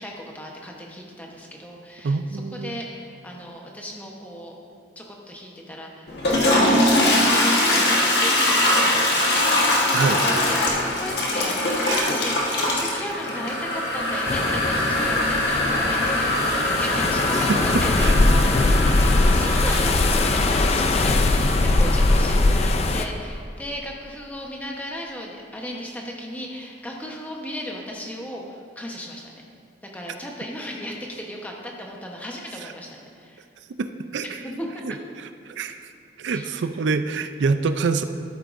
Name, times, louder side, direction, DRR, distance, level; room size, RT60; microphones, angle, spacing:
voice 1, 0.0-4.6 5.0-29.4 29.9-33.5 34.4-34.7 36.3-36.5, equal, 10° left, -1 dB, 0.9 m, -36 dB
voice 2, 2.0-2.8 9.9-10.2 11.8-12.1 17.4-18.1 19.7-19.8 32.6-32.7 34.1-34.3 34.8-34.9 35.5-35.9 36.2-38.0, right 4 dB, 80° right, 9 dB, 0.4 m, -25 dB
Toilet flush, 6.1-22.8, left 1 dB, 65° left, 1.4 m, -23 dB
sound 1, 14.3-23.0, left 2 dB, 35° left, 0.3 m, -21 dB
13.0 x 8.2 x 2.6 m, 2.4 s
head